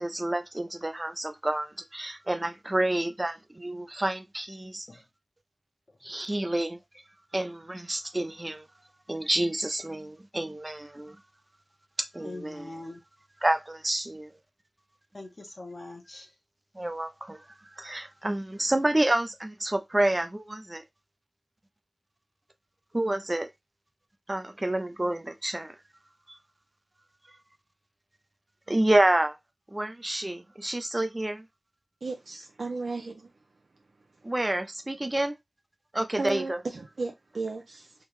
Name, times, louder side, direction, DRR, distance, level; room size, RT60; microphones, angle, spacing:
voice 1, 0.0-4.9 6.0-6.8 7.3-8.7 9.1-11.2 12.0-12.7 13.4-14.3 16.8-17.4 17.8-20.8 22.9-23.5 24.3-25.7 28.7-29.3 29.7-31.4 34.2-35.3 35.9-36.6, right 1 dB, 25° right, 0.5 m, -28 dB
voice 2, 12.2-13.0 15.1-16.3, left 2 dB, 50° left, 1.0 m, -42 dB
voice 3, 32.0-33.2 36.2-37.9, right 3 dB, 80° right, 0.6 m, -34 dB
3.6 x 3.0 x 3.1 m
wide cardioid pair, 80°, 0 cm